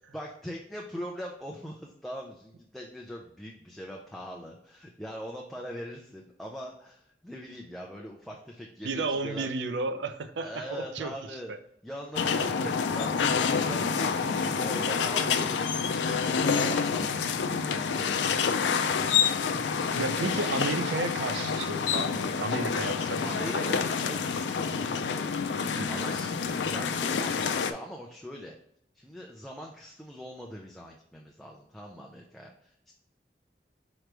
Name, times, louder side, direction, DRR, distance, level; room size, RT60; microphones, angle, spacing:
voice 1, 0.1-9.5 10.4-11.5 11.8-18.6 23.2-24.8 25.9-27.4 27.7-28.5 28.9-32.9, equal, ahead, -2 dB, 0.4 m, -42 dB
voice 2, 8.8-11.1 11.5-11.6 12.4-12.7 19.9-23.8 25.8-26.1, right 3 dB, 85° right, 9 dB, 0.5 m, -33 dB
sound 1, 12.1-27.7, left 6 dB, 90° left, 0.4 m, -28 dB
5.0 x 3.1 x 3.3 m, 0.71 s
head